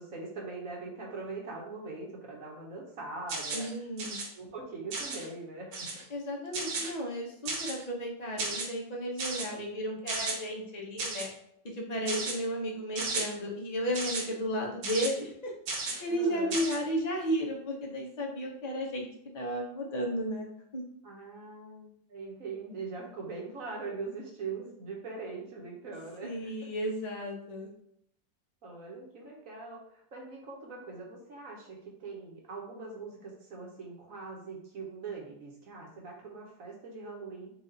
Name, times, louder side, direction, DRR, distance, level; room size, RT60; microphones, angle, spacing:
voice 1, 0.0-3.6 4.3-5.9 16.1-16.6 21.0-26.5 28.6-37.5, right 4 dB, 55° right, -1 dB, 1.3 m, -42 dB
sound 1, 3.3-3.7 4.0-4.3 4.9-5.2 5.7-6.0 6.5-6.9 7.5-7.8 8.4-8.7 9.2-9.5 10.1-10.4 11.0-11.3 12.1-12.4 13.0-13.2 13.9-14.2 14.8-15.1 15.7-16.0 16.5-16.8, right 3 dB, 85° right, 1.6 m, -34 dB
voice 2, 3.5-4.2 6.1-11.3 11.6-15.5 16.0-19.1 19.3-20.8 26.2-27.7, equal, 50° left, -1 dB, 0.5 m, -34 dB
4.7 x 2.5 x 3.9 m, 0.71 s
omnidirectional pair, 2.0 m